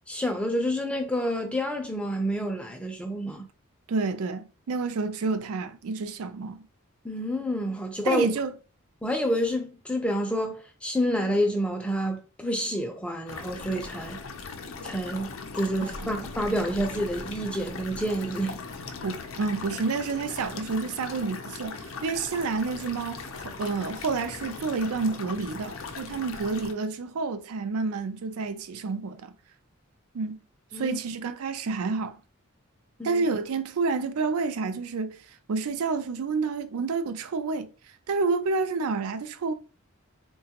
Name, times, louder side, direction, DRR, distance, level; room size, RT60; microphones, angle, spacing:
voice 1, 0.1-3.5 7.0-8.3 9.0-14.2 14.8-18.6 30.7-31.0 33.0-33.2, equal, 5° left, 0.4 m, -28 dB
voice 2, 3.9-6.6 8.0-8.5 15.8-16.3 19.0-29.3 30.1-30.4 30.7-32.2 33.0-35.2 35.5-37.7 38.1-39.5, right 4 dB, 85° right, 0.4 m, -29 dB
sound 1, 13.3-26.7, left 4 dB, 65° left, 0.5 m, -39 dB
3.8 x 2.3 x 2.8 m
head